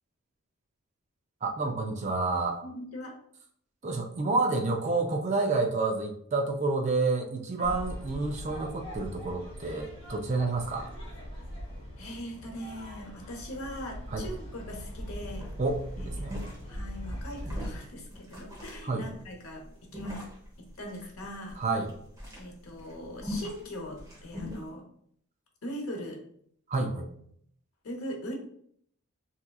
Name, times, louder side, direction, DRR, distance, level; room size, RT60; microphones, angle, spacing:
voice 1, 1.4-2.6 3.8-10.9 14.1-14.2 15.6-16.4 18.8-19.0 21.6-21.9 26.7-27.1, right 3 dB, 30° right, 4 dB, 0.3 m, -29 dB
voice 2, 2.6-3.2 7.6-7.8 12.0-15.5 16.0-16.3 16.7-20.3 20.6-21.6 22.4-24.9 25.6-26.2 27.8-28.3, equal, 75° left, 1 dB, 0.8 m, -41 dB
sound 1, 7.6-17.8, equal, 30° left, 1.5 m, -41 dB
sound 2, 15.0-15.1 15.4-24.7, left 1 dB, 15° right, 0.9 m, -42 dB
3.4 x 2.9 x 2.3 m, 0.65 s
head